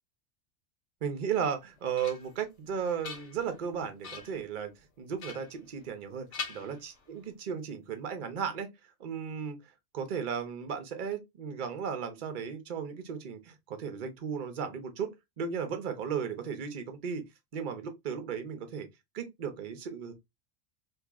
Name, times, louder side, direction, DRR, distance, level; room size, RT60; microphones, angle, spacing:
voice 1, 1.0-4.7 5.0-8.7 9.0-9.6 9.9-15.1 15.4-17.2 17.5-18.9 19.1-20.1, right 7 dB, 45° right, 0.8 m, -35 dB
sound 1, 1.5-2.4 2.8-3.6 4.0-4.5 5.2-6.0 6.3-7.3, left 5 dB, 65° left, 1.1 m, -43 dB
2.9 x 2.9 x 3.4 m
omnidirectional pair, 1.3 m